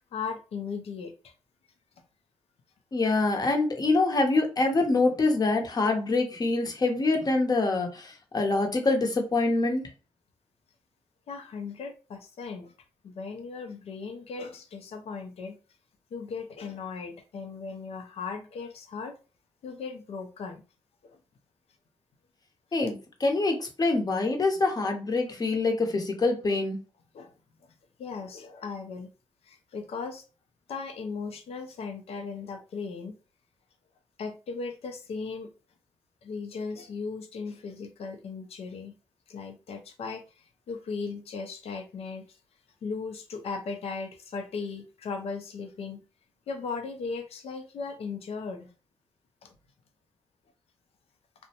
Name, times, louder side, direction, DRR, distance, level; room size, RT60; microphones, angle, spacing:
voice 1, 0.1-1.3 11.3-12.7 13.0-15.6 16.1-19.2 19.6-20.6 21.0-21.2 27.1-27.3 27.6-27.7 28.0-29.1 29.4-30.2 30.7-33.2 34.2-35.5 36.2-38.9 39.3-42.4 42.8-46.0 46.5-48.7 49.4-49.5, left 4 dB, 75° left, 0.5 m, -37 dB
voice 2, 2.9-9.8 22.7-26.8, left 3 dB, 40° left, 0.8 m, -25 dB
2.5 x 2.0 x 2.8 m
cardioid pair, 60°, 10 cm